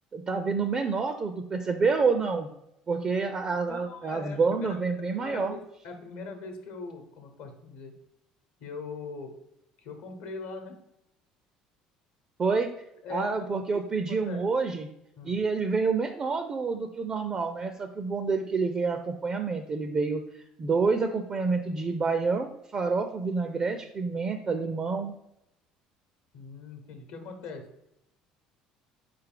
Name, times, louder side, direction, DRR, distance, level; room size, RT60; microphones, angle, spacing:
voice 1, 0.1-2.5 2.9-5.6 12.4-12.7 13.1-14.9 15.2-25.1, right 4 dB, 35° right, 7 dB, 0.4 m, -28 dB
voice 2, 3.7-4.7 5.1-7.9 8.6-9.3 9.8-10.8 13.0-13.4 14.1-14.4 15.2-15.4 26.3-27.7, left 4 dB, 75° left, 5 dB, 0.9 m, -41 dB
4.2 x 3.3 x 3.8 m, 0.83 s
hypercardioid pair, 75°, 3 cm